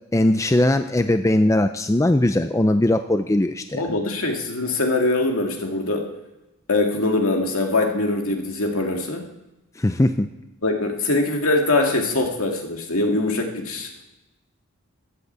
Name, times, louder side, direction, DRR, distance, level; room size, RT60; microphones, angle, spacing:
voice 1, 0.1-3.8 9.8-10.3, left 1 dB, 15° left, 8 dB, 0.4 m, -19 dB
voice 2, 3.7-6.1 6.7-9.3 10.6-13.9, left 2 dB, 70° left, 2 dB, 2.3 m, -22 dB
13.5 x 11.5 x 8.1 m, 0.98 s
head